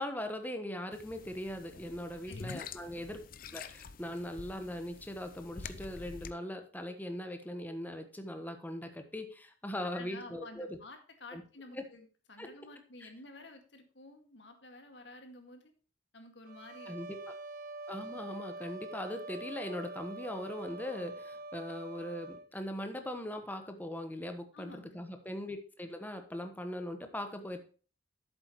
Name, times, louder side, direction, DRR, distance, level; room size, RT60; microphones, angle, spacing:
voice 1, 0.0-3.2 3.5-10.8 11.3-11.4 11.7-11.8 12.4-12.5 13.0-13.1 16.9-17.3 17.9-27.6, left 1 dB, 10° left, 6 dB, 1.2 m, -40 dB
sound 1, 0.9-6.3, left 5 dB, 50° left, 0.6 m, -47 dB
voice 2, 2.3-2.7 9.8-15.7 16.1-16.9 24.5-25.0, left 2 dB, 70° left, 5 dB, 2.1 m, -51 dB
sound 2, 16.5-22.5, right 2 dB, 50° right, 1.2 m, -45 dB
11.0 x 8.2 x 3.1 m, 0.38 s
head